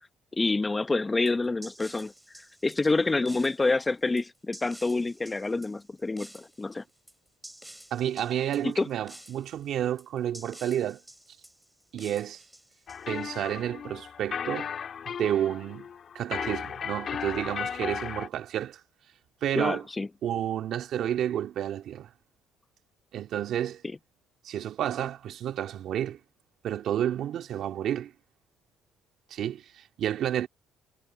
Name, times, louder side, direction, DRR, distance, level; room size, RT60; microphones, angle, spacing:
voice 1, 0.3-2.1 2.6-6.8 8.6-8.9 19.6-20.1 23.8-24.0, left 3 dB, 20° left, 0.9 m, -27 dB
sound 1, 1.3-13.5, right 1 dB, 5° right, 7.9 m, -50 dB
voice 2, 7.9-11.0 11.9-12.4 13.1-14.7 15.2-15.9 16.1-18.8 19.4-19.8 20.2-22.1 23.1-23.8 24.4-26.2 26.6-28.1 29.3-30.5, right 10 dB, 65° right, 2.5 m, -30 dB
sound 2, 12.9-18.3, left 7 dB, 45° left, 2.3 m, -35 dB
cardioid pair, 115°, 0 cm